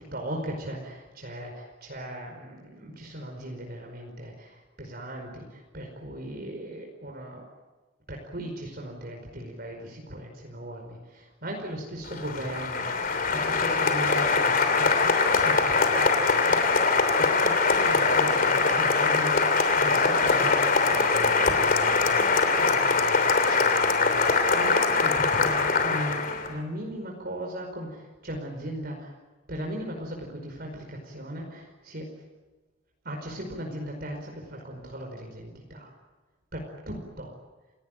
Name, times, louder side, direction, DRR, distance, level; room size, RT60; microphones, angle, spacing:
voice 1, 0.0-7.4 8.1-29.1 29.5-32.1 33.0-35.9 36.5-37.3, equal, 50° right, 1 dB, 5.0 m, -38 dB
Applause, 12.1-26.5, left 4 dB, 45° left, 3.1 m, -22 dB
29.0 x 18.5 x 9.2 m, 1.2 s
head